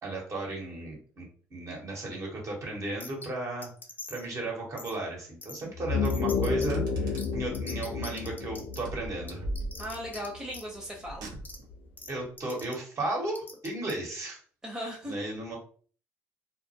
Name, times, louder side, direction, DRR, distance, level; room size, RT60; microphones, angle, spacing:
voice 1, 0.0-3.7 4.1-9.5 12.1-14.4 15.0-15.6, right 2 dB, 45° right, -1 dB, 1.0 m, -35 dB
sound 1, 3.0-3.3 3.6-4.3 4.8-4.9 5.4-5.6 6.0-6.7 7.2-7.3 7.5-8.8 9.3-10.3 10.5-10.6 11.4-11.6 12.0-12.1 12.4-12.7 13.3-13.9, left 3 dB, 25° left, 0.6 m, -43 dB
sound 2, 5.7-10.6, left 5 dB, 80° left, 0.4 m, -31 dB
Car, 6.7-7.6 8.8-10.2 11.0-11.9, right 2 dB, 70° right, 0.6 m, -39 dB
voice 2, 9.8-11.3 14.6-15.1, equal, 10° right, -2 dB, 0.8 m, -37 dB
2.1 x 2.0 x 2.8 m, 0.42 s
supercardioid pair, 70°, 7 cm